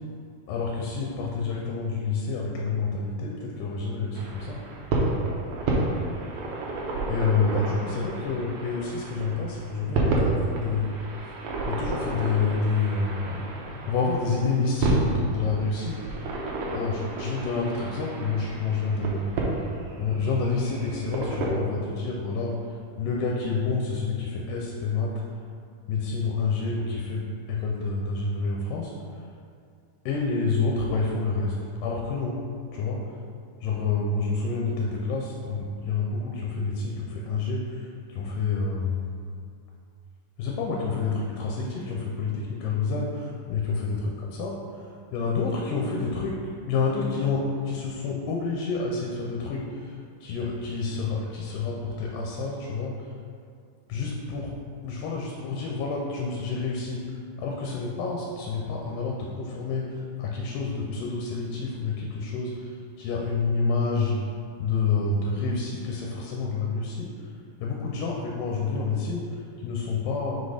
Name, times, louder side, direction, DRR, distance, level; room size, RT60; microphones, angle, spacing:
voice 1, 0.5-4.6 7.1-11.3 11.7-13.5 13.9-16.3 16.7-19.2 20.0-25.1 25.9-28.9 30.1-31.6 31.8-32.4 32.7-33.0 33.6-39.1 40.4-46.4 46.7-53.1 53.9-54.5 54.8-64.3 64.6-67.3 67.6-70.4, left 4 dB, 80° left, -1 dB, 2.2 m, -28 dB
sound 1, 4.2-21.5, right 2 dB, 75° right, 1.7 m, -30 dB
5.4 x 4.3 x 4.9 m, 2.3 s
omnidirectional pair, 4.0 m